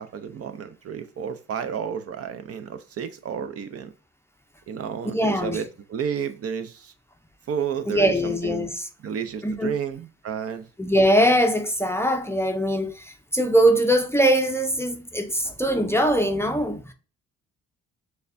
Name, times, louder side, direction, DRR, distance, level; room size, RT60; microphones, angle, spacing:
voice 1, 0.0-3.9 4.7-6.9 7.5-8.7 9.0-10.7, right 7 dB, 50° right, 0.6 m, -31 dB
voice 2, 5.1-5.6 7.9-8.9 9.4-9.8 10.8-16.9, equal, 10° left, 0.5 m, -22 dB
6.5 x 2.2 x 2.5 m
cardioid pair, 90°, 30 cm